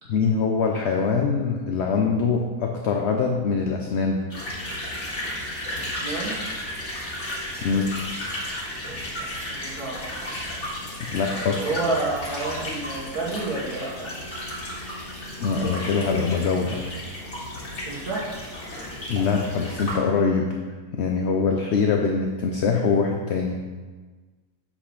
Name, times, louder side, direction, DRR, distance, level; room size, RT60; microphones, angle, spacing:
voice 1, 0.1-4.2 7.6-7.9 11.1-11.6 15.4-16.8 19.1-20.6 20.9-23.6, left 5 dB, 60° left, 2 dB, 0.7 m, -23 dB
sound 1, 4.3-19.9, left 1 dB, 45° left, 2.1 m, -33 dB
voice 2, 5.8-6.5 9.2-9.3 9.6-10.2 11.6-14.1 17.9-18.3, right 3 dB, 70° right, -5 dB, 1.8 m, -29 dB
8.1 x 4.3 x 5.7 m, 1.4 s
omnidirectional pair, 1.7 m